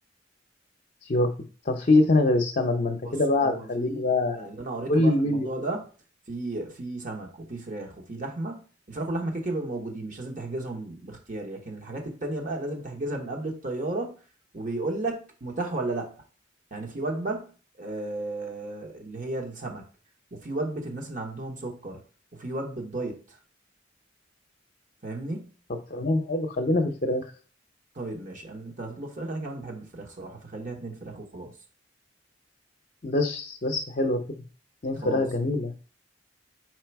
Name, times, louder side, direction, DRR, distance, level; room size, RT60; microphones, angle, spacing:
voice 1, 1.7-4.5 4.9-5.5 25.9-27.2 33.0-34.2 34.8-35.7, left 2 dB, 45° left, 2 dB, 0.7 m, -24 dB
voice 2, 3.0-4.1 4.4-5.9 6.3-14.2 14.5-16.1 16.7-19.9 20.3-22.0 22.3-23.4 25.0-25.5 27.9-31.6 34.9-35.2, right 2 dB, 45° right, 1 dB, 1.2 m, -34 dB
4.7 x 4.3 x 4.6 m, 0.38 s
head